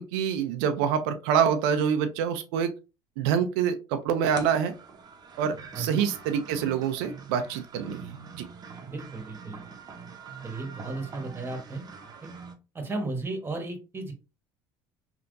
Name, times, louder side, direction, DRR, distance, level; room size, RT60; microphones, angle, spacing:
voice 1, 0.0-2.7 3.2-4.7 5.4-8.5, right 8 dB, 90° right, 0.5 m, -26 dB
sound 1, 4.3-12.5, right 5 dB, 35° right, 0.7 m, -44 dB
voice 2, 5.7-6.0 8.8-9.6 10.4-11.8 12.2-12.3 12.7-14.1, right 2 dB, 20° right, 1.1 m, -35 dB
3.4 x 2.8 x 2.6 m
supercardioid pair, 105°, 12 cm